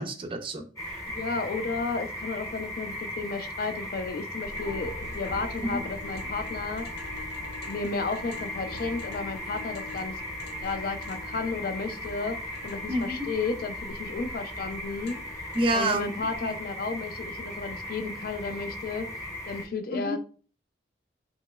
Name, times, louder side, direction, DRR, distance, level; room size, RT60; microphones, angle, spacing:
voice 1, 0.0-1.0 5.6-5.8 12.9-13.3 15.5-16.1 16.4-16.6 19.9-20.2, right 1 dB, 30° right, 0.4 m, -29 dB
sound 1, 0.8-19.6, left 1 dB, 20° left, 0.7 m, -38 dB
voice 2, 1.1-6.9 7.6-10.2 10.6-20.2, left 4 dB, 55° left, 0.3 m, -33 dB
sound 2, 4.4-15.9, left 2 dB, 70° left, 0.7 m, -44 dB
2.9 x 2.8 x 2.2 m
head